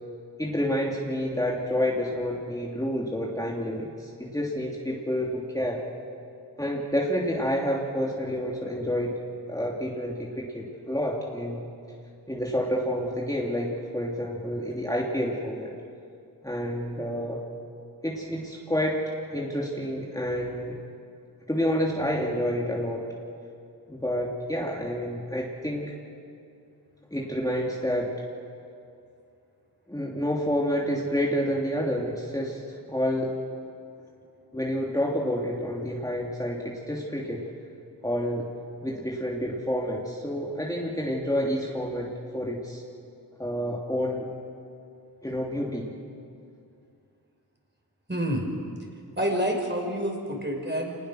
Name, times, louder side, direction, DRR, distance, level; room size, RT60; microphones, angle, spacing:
voice 1, 0.4-5.8 6.6-9.2 9.5-11.7 12.3-15.7 16.4-17.4 18.0-20.8 21.5-23.1 23.9-25.9 27.1-28.2 29.9-32.6 32.9-33.3 34.5-37.4 38.0-38.5 38.8-42.8 43.4-44.3 45.2-46.0, equal, 10° left, -3 dB, 3.0 m, -29 dB
voice 2, 48.1-48.5 49.2-51.0, equal, 25° right, 1 dB, 5.4 m, -28 dB
26.0 x 20.0 x 6.4 m, 2.5 s
cardioid pair, 45°, 40 cm